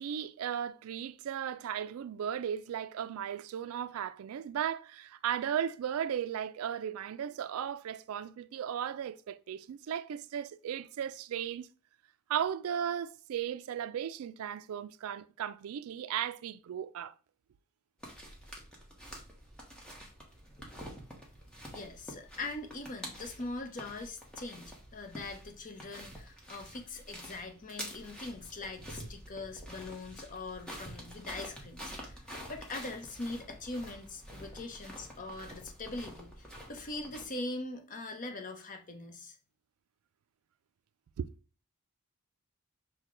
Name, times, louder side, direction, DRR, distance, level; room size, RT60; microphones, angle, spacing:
voice 1, 0.0-11.7 12.3-17.1 41.2-41.3, right 9 dB, 65° right, 0.3 m, -36 dB
sound 1, 18.0-37.3, equal, 5° left, 1.0 m, -48 dB
voice 2, 21.7-32.2 32.5-39.4, left 2 dB, 35° left, 0.7 m, -42 dB
6.5 x 2.2 x 3.7 m
head